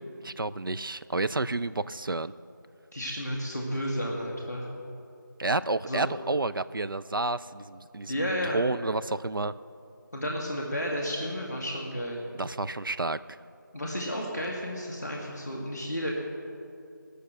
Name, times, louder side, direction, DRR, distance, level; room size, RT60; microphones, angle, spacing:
voice 1, 0.2-2.3 5.4-9.5 12.3-13.4, right 2 dB, 80° right, 13 dB, 0.4 m, -30 dB
voice 2, 2.9-4.7 5.9-6.0 8.1-8.6 10.1-12.2 13.7-16.1, equal, 5° right, -13 dB, 0.8 m, -32 dB
16.5 x 6.6 x 7.8 m, 2.6 s
figure-of-eight pair, 175°, 11 cm